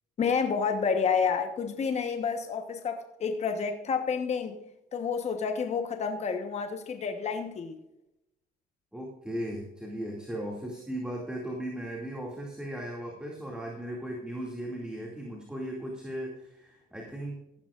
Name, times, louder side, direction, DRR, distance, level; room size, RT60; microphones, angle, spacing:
voice 1, 0.2-4.6 4.9-7.8, left 6 dB, 40° left, 1.1 m, -29 dB
voice 2, 8.9-17.4, right 1 dB, 5° right, 2.4 m, -37 dB
15.0 x 12.0 x 2.5 m
cardioid pair, 110°, 17 cm